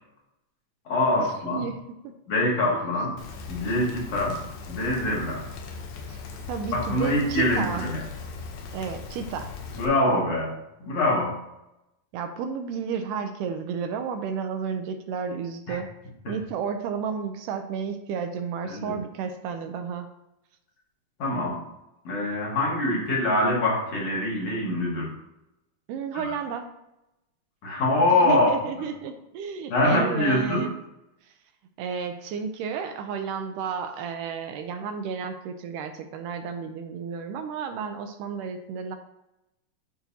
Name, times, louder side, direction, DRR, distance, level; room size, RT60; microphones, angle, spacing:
voice 1, 0.9-1.7 2.3-3.2 3.5-4.4 4.7-5.4 6.7-8.0 9.8-10.6 10.8-11.4 15.7-15.8 16.3-16.4 18.6-19.0 21.2-21.6 22.0-25.1 26.1-26.3 27.6-28.5 29.7-30.7, left 1 dB, 55° left, -4 dB, 2.3 m, -24 dB
Rain, 3.2-9.9, left 4 dB, 85° left, 2.6 m, -39 dB
voice 2, 6.5-7.9 8.7-9.5 12.1-15.9 16.3-20.1 25.9-26.7 28.2-30.7 31.2-31.3 31.8-39.0, right 6 dB, 80° right, 7 dB, 2.1 m, -32 dB
11.0 x 4.3 x 2.7 m, 0.88 s
omnidirectional pair, 3.8 m